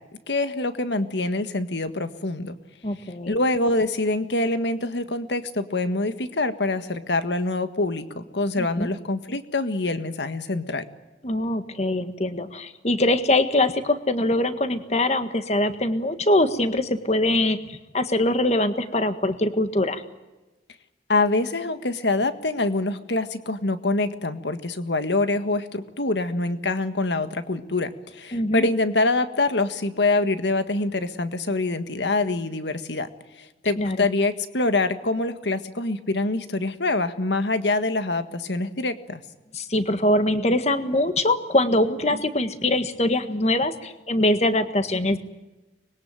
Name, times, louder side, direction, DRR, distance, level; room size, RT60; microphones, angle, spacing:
voice 1, 0.3-2.6 3.3-10.8 21.1-33.1 33.4-39.2, left 2 dB, 85° left, 10 dB, 1.7 m, -25 dB
voice 2, 2.8-3.3 8.6-8.9 11.2-20.0 28.3-28.7 33.8-34.1 39.5-45.2, left 1 dB, 40° left, 10 dB, 1.6 m, -23 dB
25.0 x 21.5 x 9.1 m, 1.1 s
head